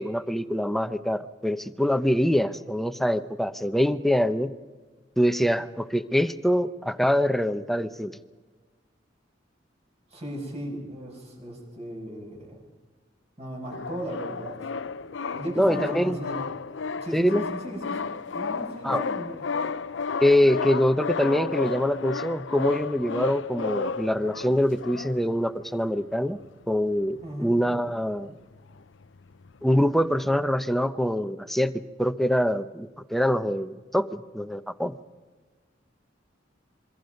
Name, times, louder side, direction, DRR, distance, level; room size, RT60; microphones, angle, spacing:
voice 1, 0.0-4.5 5.2-8.2 15.6-16.2 17.1-17.4 18.8-19.0 20.2-26.4 26.7-28.3 29.6-35.0, equal, ahead, 12 dB, 0.7 m, -24 dB
voice 2, 10.1-12.6 13.4-14.7 15.3-16.4 17.0-19.4 27.2-27.5, right 1 dB, 35° right, 0 dB, 6.6 m, -36 dB
sound 1, 13.7-25.4 26.0-26.1 26.3-26.5 26.9-28.3 28.5-30.3, left 4 dB, 85° left, 0.6 m, -33 dB
27.0 x 23.5 x 5.3 m, 1.3 s
head